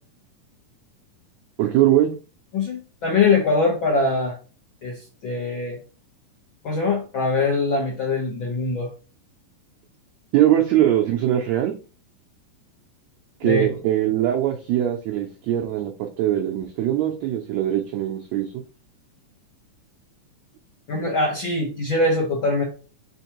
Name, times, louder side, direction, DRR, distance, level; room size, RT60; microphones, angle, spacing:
voice 1, 1.6-2.1 10.3-11.7 13.4-15.9 16.2-18.5, right 12 dB, 90° right, 2 dB, 1.5 m, -21 dB
voice 2, 2.5-4.3 4.8-5.0 5.2-5.8 6.6-8.9 13.4-13.7 20.9-22.6, left 3 dB, 75° left, -3 dB, 1.1 m, -22 dB
5.0 x 3.6 x 2.9 m, 0.36 s
omnidirectional pair, 3.8 m